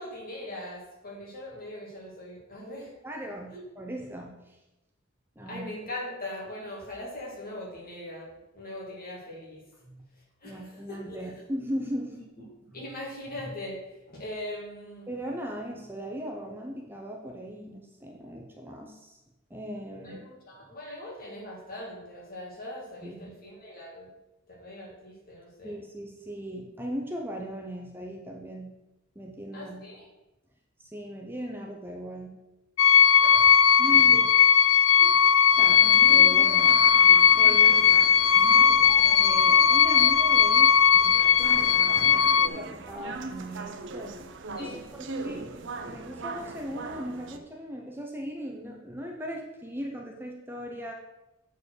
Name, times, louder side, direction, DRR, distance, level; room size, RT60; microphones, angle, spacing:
voice 1, 0.0-2.9 3.5-3.6 5.5-9.6 10.4-11.3 12.1-12.2 12.7-13.8 14.1-15.1 20.0-24.1 24.5-25.8 29.5-30.1 33.2-33.6 34.1-34.3 44.6-44.8, left 1 dB, 45° left, -2 dB, 2.7 m, -40 dB
voice 2, 3.0-4.6 5.4-5.7 9.8-10.0 10.4-12.1 12.7-12.8 15.1-19.2 19.5-20.2 23.0-23.3 25.6-28.7 29.1-29.9 30.8-32.3 33.8-34.3 35.0-36.7 37.4-37.9 39.2-44.1 44.6-50.9, equal, 10° right, 1 dB, 0.8 m, -38 dB
sound 1, 32.8-42.5, left 8 dB, 70° left, 0.4 m, -18 dB
sound 2, 35.5-47.4, right 3 dB, 60° right, 0.7 m, -40 dB
7.9 x 4.7 x 6.6 m, 0.98 s
head